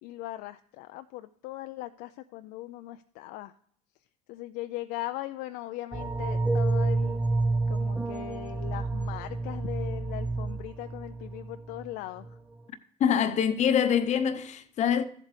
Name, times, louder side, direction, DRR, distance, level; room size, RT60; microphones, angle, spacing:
voice 1, 0.0-3.5 4.3-7.2 7.7-12.4, left 16 dB, 65° left, 0.4 m, -39 dB
sound 1, 5.9-11.9 12.2-12.3, right 3 dB, 10° right, 0.5 m, -29 dB
voice 2, 13.0-15.0, left 8 dB, 45° left, 0.8 m, -25 dB
14.5 x 7.5 x 3.2 m
supercardioid pair, 90°, 16 cm